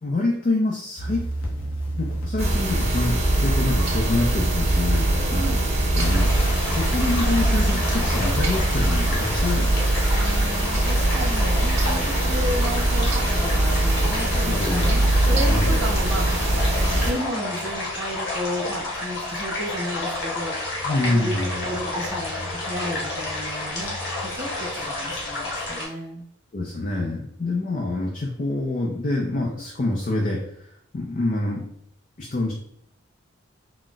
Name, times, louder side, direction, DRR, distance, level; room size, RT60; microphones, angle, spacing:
voice 1, 0.0-1.2 2.0-5.4 5.9-9.7 14.5-15.8 20.8-21.7 24.7-24.8 26.5-30.4 30.9-31.6 32.2-32.5, left 2 dB, 40° left, -1 dB, 0.4 m, -26 dB
sound 1, 1.0-8.7, right 1 dB, 80° left, 0.7 m, -30 dB
sound 2, 2.4-17.1, right 1 dB, 30° right, 1.2 m, -22 dB
voice 2, 5.2-5.6 10.1-24.0 24.2-26.3, equal, 60° right, -5 dB, 1.2 m, -33 dB
sound 3, 6.0-25.9, left 2 dB, 60° left, 1.0 m, -30 dB
3.9 x 2.0 x 2.3 m, 0.71 s
head